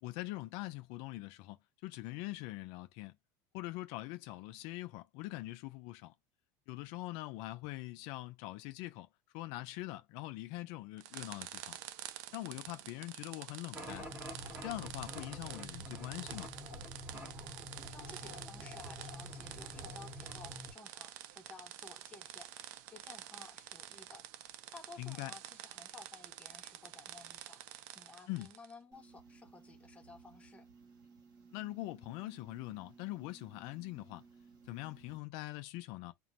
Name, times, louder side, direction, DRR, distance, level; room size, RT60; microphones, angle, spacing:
voice 1, 0.0-1.6 1.8-3.1 3.5-6.1 6.7-9.1 9.3-11.8 12.3-14.1 14.6-16.5 25.0-25.3 28.3-28.5 31.5-34.2 34.6-36.1, left 18 dB, 65° left, 0.4 m, -43 dB
sound 1, 11.0-28.7, right 13 dB, 75° right, 0.4 m, -49 dB
sound 2, 13.7-20.7, left 1 dB, 25° right, 1.5 m, -47 dB
voice 2, 17.9-24.3 24.7-27.6 27.9-30.7, left 3 dB, 15° left, 0.7 m, -55 dB
sound 3, 28.9-35.2, right 5 dB, 45° right, 1.1 m, -59 dB
2.5 x 2.2 x 3.0 m
supercardioid pair, 115°, 10 cm